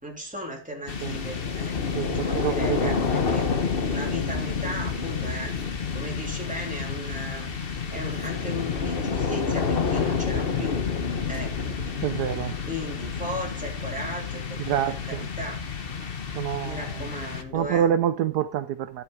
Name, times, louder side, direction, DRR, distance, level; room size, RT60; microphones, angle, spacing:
voice 1, 0.0-1.7 2.1-5.5 5.9-10.8 11.3-11.8 12.7-15.6 16.6-17.9, equal, 5° right, 3.0 m, -36 dB
sound 1, 0.9-17.8, left 5 dB, 40° left, 0.9 m, -29 dB
voice 2, 2.0-3.0 12.0-12.6 14.7-15.2 16.3-16.8 17.5-19.0, right 10 dB, 70° right, 1.0 m, -26 dB
12.0 x 8.3 x 4.7 m
omnidirectional pair, 2.3 m